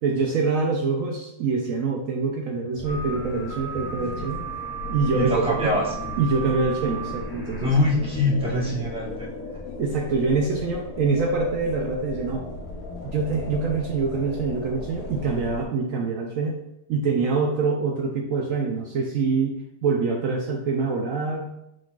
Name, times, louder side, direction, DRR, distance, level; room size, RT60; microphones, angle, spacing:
voice 1, 0.0-4.4 4.9-5.8 6.2-7.7 9.8-12.4 13.0-16.6 16.9-21.5, right 4 dB, 70° right, 1 dB, 0.8 m, -25 dB
sound 1, 2.7-15.6, left 2 dB, 65° left, 1.1 m, -36 dB
sound 2, 2.8-7.9, right 7 dB, 90° right, 2.3 m, -36 dB
voice 2, 5.1-5.8 6.8-7.0 7.6-9.3, left 2 dB, 5° right, -4 dB, 0.5 m, -24 dB
4.9 x 3.9 x 2.3 m, 0.85 s
omnidirectional pair, 1.8 m